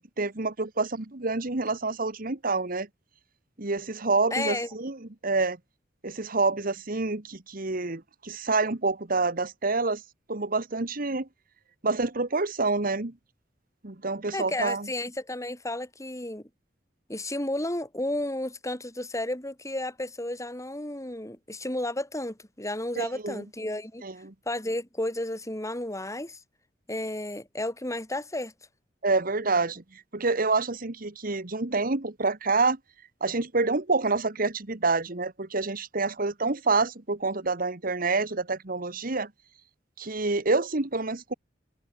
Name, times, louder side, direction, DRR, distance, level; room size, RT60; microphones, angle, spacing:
voice 1, 0.0-2.9 3.6-5.6 6.0-10.0 10.3-11.3 11.8-13.1 13.8-14.9 23.0-23.4 24.0-24.3 29.0-32.8 33.2-39.3 40.0-41.3, right 3 dB, 50° right, 1.6 m, -27 dB
voice 2, 4.3-4.7 14.3-16.4 17.1-24.0 24.5-26.4 26.9-28.5, left 1 dB, 15° left, 5.3 m, -32 dB
head